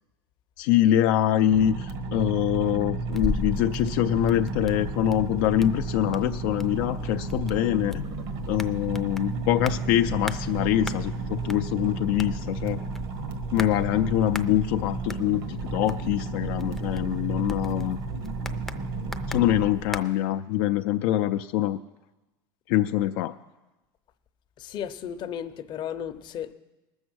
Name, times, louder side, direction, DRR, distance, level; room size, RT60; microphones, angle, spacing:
voice 1, 0.6-8.1 8.5-12.9 13.5-18.0 19.3-21.8 22.7-23.4, left 12 dB, 70° left, 0.4 m, -24 dB
sound 1, 1.5-19.7, right 3 dB, 80° right, 1.5 m, -33 dB
sound 2, 3.1-20.0, left 1 dB, 5° left, 0.5 m, -39 dB
voice 2, 24.6-26.5, left 9 dB, 40° left, 0.7 m, -34 dB
19.5 x 7.1 x 6.2 m
supercardioid pair, 130°, 11 cm